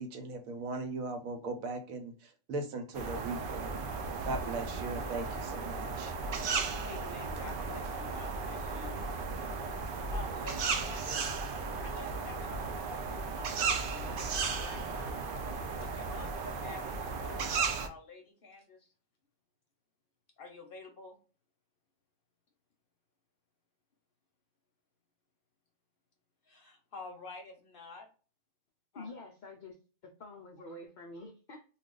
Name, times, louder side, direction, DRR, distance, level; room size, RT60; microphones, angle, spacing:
voice 1, 0.0-3.9 4.2-6.1, right 3 dB, 85° right, 6 dB, 1.1 m, -38 dB
sound 1, 2.9-17.9, right 4 dB, 65° right, 0.5 m, -35 dB
voice 2, 6.6-9.0 9.9-11.3 11.8-13.1 13.3-15.3 15.8-18.9 20.4-21.2 26.5-28.1 28.9-29.1, left 3 dB, 50° left, 3 dB, 0.8 m, -49 dB
voice 3, 28.9-29.8 30.0-31.6, left 2 dB, 80° left, 2 dB, 0.4 m, -47 dB
2.4 x 2.3 x 3.6 m, 0.37 s
omnidirectional pair, 1.4 m